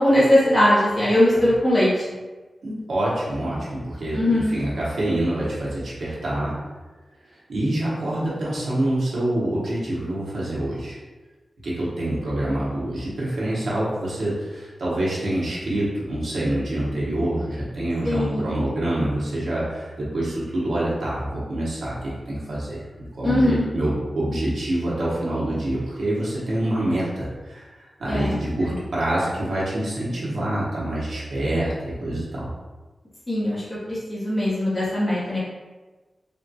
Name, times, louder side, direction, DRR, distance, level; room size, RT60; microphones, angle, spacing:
voice 1, 0.0-2.0 4.1-4.6 18.0-18.5 23.2-23.7 28.1-28.4 33.3-35.4, left 1 dB, 15° left, -9 dB, 0.8 m, -20 dB
voice 2, 2.6-6.6 7.5-11.0 11.6-22.8 23.2-32.5, right 1 dB, 80° right, -7 dB, 0.9 m, -26 dB
3.4 x 2.2 x 2.7 m, 1.2 s
wide cardioid pair, 140°, 0 cm